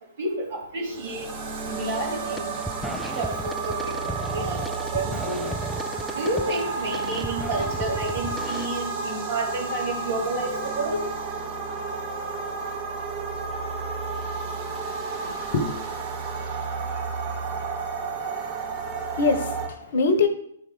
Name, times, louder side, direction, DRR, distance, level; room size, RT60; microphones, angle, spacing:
voice 1, 0.2-1.2 1.7-2.5 2.8-4.6 4.9-5.4 6.1-11.0, right 2 dB, 55° right, -2 dB, 3.1 m, -30 dB
sound 1, 0.8-19.7, right 4 dB, 35° right, 1.7 m, -31 dB
sound 2, 1.8-2.1 2.4-8.7, equal, ahead, 0.3 m, -35 dB
voice 2, 15.1-15.8 18.2-18.3 19.2-20.3, left 3 dB, 55° left, 9 dB, 1.0 m, -24 dB
11.5 x 4.5 x 3.8 m, 0.71 s
figure-of-eight pair, 125°, 0 cm